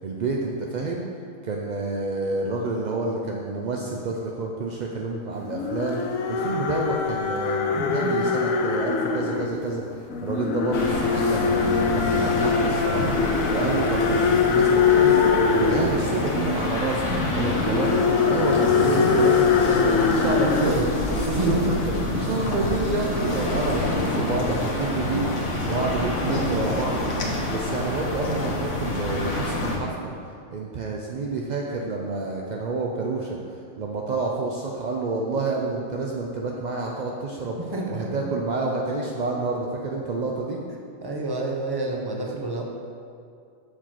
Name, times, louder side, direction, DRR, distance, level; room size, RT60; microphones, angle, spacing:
voice 1, 0.0-1.1 1.4-9.8 10.2-17.9 18.2-20.9 21.1-21.8 22.2-27.0 27.5-30.1 30.5-33.4 33.8-37.6 37.9-40.6, right 3 dB, 60° right, -1 dB, 0.4 m, -29 dB
sound 1, 5.4-9.5 10.1-21.2, left 6 dB, 80° left, 1.0 m, -23 dB
voice 2, 7.7-8.2 17.1-17.4 20.6-21.7 22.1-22.2 37.6-38.2 41.0-42.6, right 2 dB, 20° right, -1 dB, 0.7 m, -29 dB
sound 2, 10.7-29.8, left 1 dB, 65° left, 1.3 m, -27 dB
7.0 x 4.5 x 5.8 m, 2.4 s
omnidirectional pair, 1.4 m